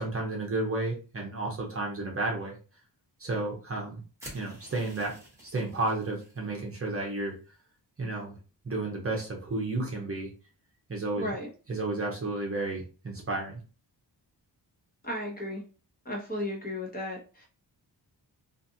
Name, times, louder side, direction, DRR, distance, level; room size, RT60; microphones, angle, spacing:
voice 1, 0.0-2.5 3.2-4.0 4.3-5.1 5.4-7.3 8.0-8.4 8.6-10.3 10.9-11.3 11.7-13.6, right 2 dB, 35° right, -1 dB, 0.8 m, -32 dB
sound 1, 4.2-6.4, right 1 dB, 5° right, 1.0 m, -49 dB
voice 2, 11.2-11.5 15.0-15.6 16.0-17.5, left 1 dB, 20° left, -1 dB, 0.9 m, -34 dB
2.6 x 2.4 x 2.7 m, 0.35 s
wide cardioid pair, 135°, 42 cm